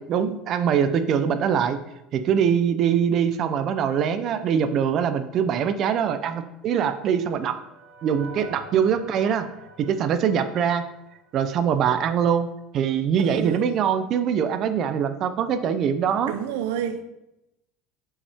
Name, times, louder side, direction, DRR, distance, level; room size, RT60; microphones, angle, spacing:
voice 1, 0.0-1.8 2.1-7.5 8.0-9.5 9.8-10.8 11.3-12.5 12.7-16.3, right 8 dB, 35° right, 9 dB, 0.5 m, -23 dB
sound 1, 6.5-11.8, right 3 dB, 55° right, 1.5 m, -47 dB
voice 2, 13.2-13.7 16.3-17.1, right 9 dB, 90° right, 9 dB, 0.7 m, -29 dB
7.1 x 5.5 x 3.5 m, 0.88 s
cardioid pair, 175°, 0 cm